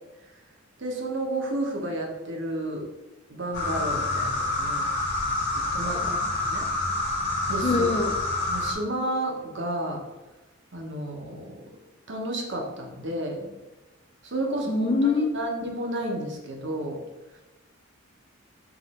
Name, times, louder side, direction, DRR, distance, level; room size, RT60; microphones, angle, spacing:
voice 1, 0.8-2.9 3.3-4.9 5.7-6.7 7.5-7.9 8.4-10.0 10.7-11.5 12.1-13.5 14.2-17.0, right 1 dB, 55° right, 1 dB, 0.8 m, -31 dB
sound 1, 3.5-8.7, left 2 dB, 45° left, 1.4 m, -27 dB
voice 2, 7.6-8.1 14.7-15.3, left 3 dB, 25° left, 5 dB, 0.4 m, -24 dB
4.8 x 2.6 x 4.1 m, 1.1 s
head